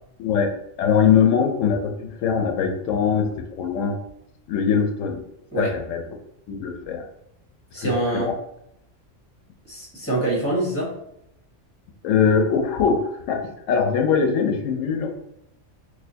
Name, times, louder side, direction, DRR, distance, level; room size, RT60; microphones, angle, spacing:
voice 1, 0.2-4.0 4.5-5.2 5.6-6.0 6.5-7.0 7.8-8.3 12.0-13.0 13.3-15.1, left 6 dB, 85° left, 3 dB, 0.9 m, -22 dB
voice 2, 7.7-8.3 9.7-10.9, right 2 dB, 10° left, -4 dB, 1.1 m, -25 dB
4.2 x 2.4 x 2.7 m, 0.77 s
omnidirectional pair, 1.3 m